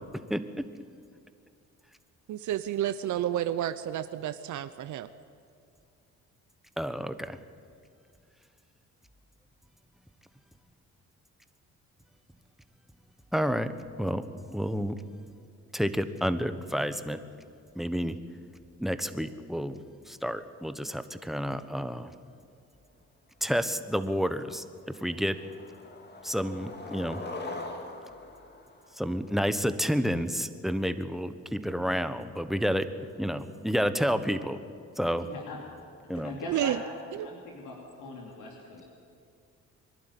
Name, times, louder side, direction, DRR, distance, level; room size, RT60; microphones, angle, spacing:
voice 1, 0.3-0.7 6.8-7.4 13.3-13.7 14.0-14.2 14.5-15.0 15.7-17.2 17.7-18.2 18.8-19.8 20.1-22.1 23.4-24.6 25.0-25.4 26.2-27.2 29.0-32.9 33.2-34.6 35.0-35.3 36.1-36.3, equal, ahead, 11 dB, 1.1 m, -30 dB
voice 2, 2.3-5.1 36.5-36.8 37.1-37.3, right 11 dB, 75° right, 12 dB, 0.7 m, -30 dB
Skateboard, 23.7-23.8 24.2-24.5 24.9-29.5, left 2 dB, 35° left, 2.6 m, -42 dB
voice 3, 35.2-35.6 36.1-36.8 37.2-38.9, left 3 dB, 85° left, -1 dB, 3.1 m, -41 dB
24.0 x 12.0 x 10.0 m, 2.4 s
cardioid pair, 90°, 30 cm